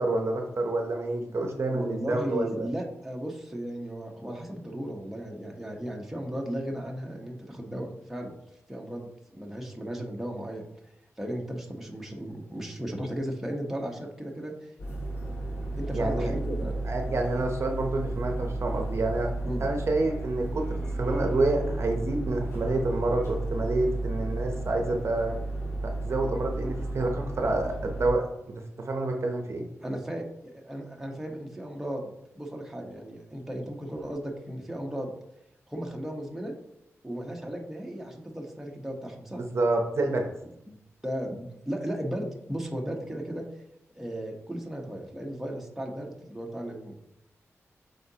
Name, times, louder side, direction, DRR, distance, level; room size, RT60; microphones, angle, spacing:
voice 1, 0.0-2.7 15.9-16.3 16.8-19.3 19.6-25.4 25.8-29.6 39.5-40.3, right 2 dB, 55° right, 3 dB, 0.8 m, -28 dB
voice 2, 1.7-8.4 8.7-10.9 11.2-14.7 15.6-16.7 19.4-19.7 29.8-32.1 32.4-35.1 35.7-36.5 37.0-39.4 40.6-40.8 41.0-43.5 43.9-46.9, right 1 dB, 5° right, 0 dB, 1.1 m, -35 dB
sound 1, 14.8-28.1, right 2 dB, 60° left, 2.2 m, -33 dB
8.5 x 3.9 x 2.9 m, 0.82 s
wide cardioid pair, 90°, 5 cm